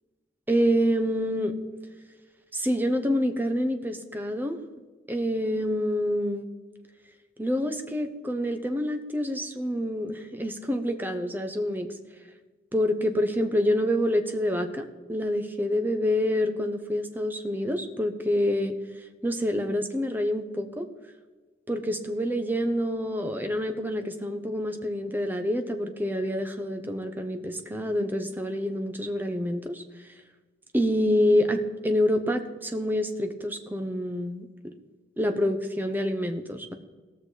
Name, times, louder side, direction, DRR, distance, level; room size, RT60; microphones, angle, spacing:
voice 1, 0.5-1.6 2.5-4.6 5.1-6.4 7.4-11.9 12.7-18.8 19.2-20.9 21.7-29.8 30.7-34.5 35.2-36.7, equal, 10° right, 6 dB, 0.8 m, -27 dB
17.5 x 6.5 x 4.0 m, 1.3 s
head